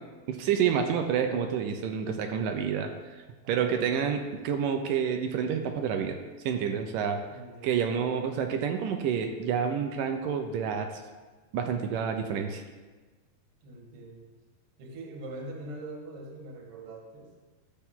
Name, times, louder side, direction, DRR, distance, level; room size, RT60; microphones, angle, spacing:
voice 1, 0.3-2.9 3.5-6.2 6.4-7.2 7.6-11.0 11.5-12.6, right 7 dB, 75° right, 5 dB, 2.1 m, -28 dB
voice 2, 3.4-4.1 7.3-8.0 13.6-14.3 14.8-17.3, right 2 dB, 45° right, 0 dB, 2.2 m, -43 dB
15.0 x 8.2 x 3.8 m, 1.3 s
omnidirectional pair, 4.4 m